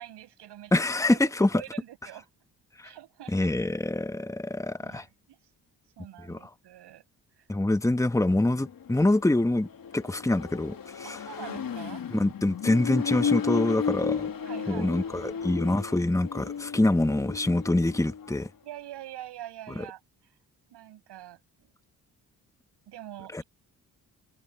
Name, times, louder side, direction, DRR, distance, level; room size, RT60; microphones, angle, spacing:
voice 1, 0.0-0.7 1.1-1.2 1.5-2.3 2.8-3.5 4.7-5.4 6.0-7.1 7.4-7.5 11.0-12.2 14.4-15.4 18.6-20.4 20.7-21.7 22.9-23.4, right 13 dB, 85° right, 7.0 m, -45 dB
voice 2, 0.7-1.5 2.8-2.9 3.3-5.0 6.3-6.4 7.5-9.7 9.9-11.2 12.1-14.3 14.7-18.5 19.8-19.9 23.3-23.4, left 2 dB, 10° left, 1.3 m, -25 dB
Accelerating revving vroom, 8.1-18.5, left 7 dB, 55° left, 2.0 m, -34 dB
supercardioid pair, 60°, 40 cm